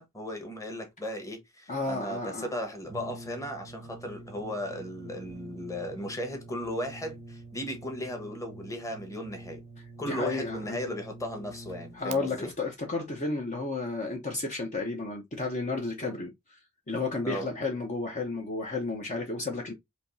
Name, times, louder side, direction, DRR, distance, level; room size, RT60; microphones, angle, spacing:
voice 1, 0.0-9.6 10.0-12.5 17.2-17.5, equal, 15° left, 1.2 m, -36 dB
voice 2, 1.7-2.5 10.0-10.8 11.9-16.6 16.9-19.7, left 3 dB, 35° left, 0.8 m, -32 dB
Brass instrument, 2.9-12.2, right 2 dB, 30° right, 0.6 m, -46 dB
5.0 x 2.9 x 2.6 m
head